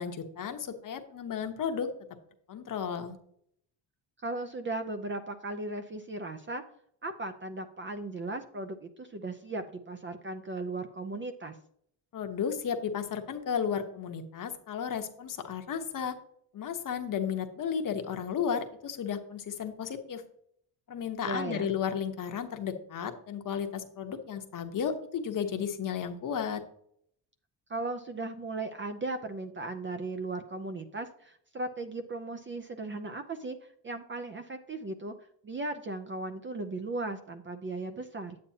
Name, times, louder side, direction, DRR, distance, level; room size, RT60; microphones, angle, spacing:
voice 1, 0.0-1.9 2.5-3.2 12.1-16.1 16.5-20.2 20.9-26.6, left 7 dB, 45° left, 6 dB, 1.0 m, -33 dB
voice 2, 4.2-6.6 7.0-11.6 21.2-21.7 27.7-33.6 33.8-35.1 35.4-38.4, right 2 dB, 25° right, 7 dB, 0.5 m, -37 dB
8.6 x 8.2 x 2.8 m, 0.68 s
cardioid pair, 135°, 45 cm